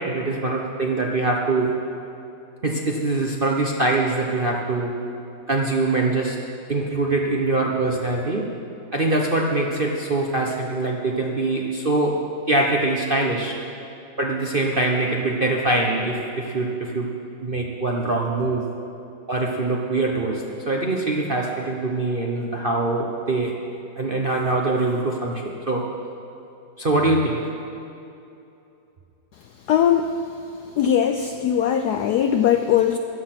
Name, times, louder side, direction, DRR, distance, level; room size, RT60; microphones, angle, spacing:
voice 1, 0.0-1.7 2.6-5.0 5.5-6.4 6.7-8.5 8.9-12.2 12.5-13.6 14.2-17.1 17.4-18.6 19.3-23.6 24.0-25.9 26.8-27.5, right 2 dB, 40° right, -1 dB, 0.7 m, -23 dB
voice 2, 29.7-30.1 30.8-33.0, left 9 dB, 75° left, 7 dB, 0.9 m, -20 dB
15.5 x 11.5 x 6.0 m, 2.7 s
omnidirectional pair, 2.2 m